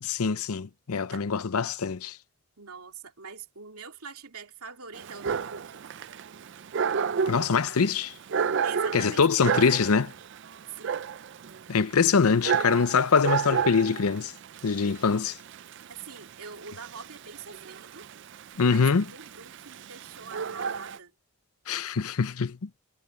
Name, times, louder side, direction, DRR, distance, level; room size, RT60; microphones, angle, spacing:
voice 1, 0.0-2.2 7.3-8.1 8.9-10.1 11.7-14.3 14.6-15.4 18.6-19.0 21.7-22.7, left 5 dB, 85° left, 0.6 m, -24 dB
voice 2, 2.6-5.9 8.6-9.6 10.7-11.0 15.9-18.1 18.6-21.1, right 5 dB, 90° right, 2.6 m, -44 dB
Dog, 4.9-21.0, right 6 dB, 55° right, 0.4 m, -32 dB
head